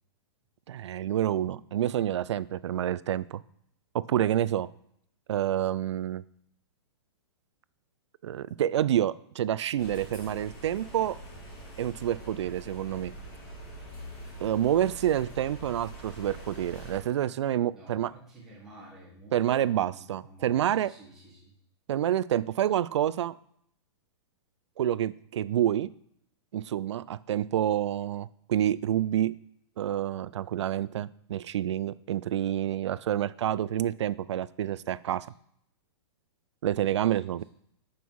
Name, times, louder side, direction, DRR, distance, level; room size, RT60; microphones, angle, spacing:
voice 1, 0.7-3.4 3.9-4.7 5.3-6.2 8.2-11.2 11.8-13.1 14.4-18.1 19.3-20.9 21.9-23.3 24.8-25.9 26.5-29.3 29.8-35.3 36.6-37.4, right 11 dB, 85° right, 18 dB, 0.4 m, -28 dB
sound 1, 9.8-17.0, right 1 dB, 25° left, 1.5 m, -44 dB
voice 2, 17.7-21.5 37.2-37.4, right 2 dB, 5° right, -7 dB, 1.3 m, -51 dB
6.2 x 5.5 x 4.6 m, 0.71 s
hypercardioid pair, 175°, 14 cm